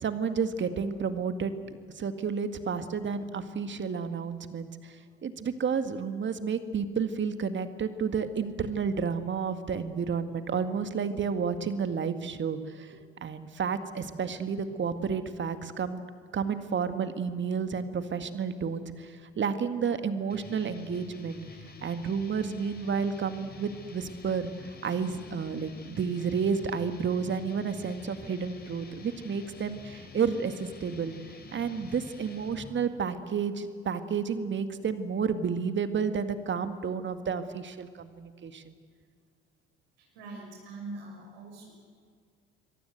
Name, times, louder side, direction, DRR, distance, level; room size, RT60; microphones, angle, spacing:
voice 1, 0.0-16.0 16.3-21.4 21.8-31.1 31.5-38.8, right 6 dB, 35° right, 9 dB, 1.9 m, -31 dB
sound 1, 20.3-32.8, left 4 dB, 30° left, 4.7 m, -48 dB
voice 2, 40.0-41.7, right 2 dB, 70° right, -1 dB, 6.6 m, -43 dB
27.0 x 23.5 x 8.1 m, 2.1 s
figure-of-eight pair, 55°, 32 cm